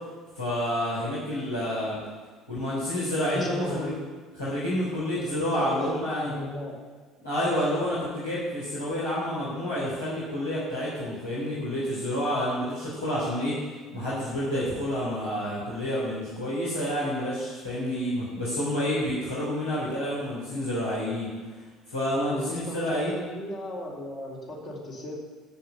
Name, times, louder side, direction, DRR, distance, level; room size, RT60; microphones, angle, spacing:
voice 1, 0.4-2.0 2.5-3.9 4.4-6.3 7.2-13.6 13.9-21.3 21.9-23.1, equal, 85° left, -10 dB, 3.7 m, -29 dB
voice 2, 3.2-4.0 5.1-6.7 22.2-25.2, left 1 dB, 50° left, -3 dB, 4.3 m, -36 dB
10.5 x 7.6 x 8.5 m, 1.4 s
figure-of-eight pair, 60°, 0 cm